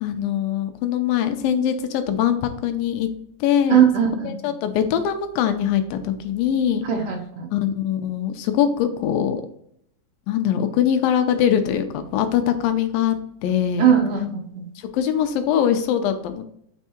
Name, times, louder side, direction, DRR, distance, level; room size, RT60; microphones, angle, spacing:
voice 1, 0.0-3.1 3.4-3.8 4.3-6.9 7.5-9.4 10.3-13.2 13.4-13.9 14.9-16.4, left 9 dB, 85° left, 8 dB, 2.4 m, -22 dB
voice 2, 3.7-4.3 6.8-7.5 13.8-14.6, right 8 dB, 75° right, 3 dB, 2.3 m, -19 dB
6.3 x 3.5 x 4.3 m, 0.69 s
omnidirectional pair, 4.0 m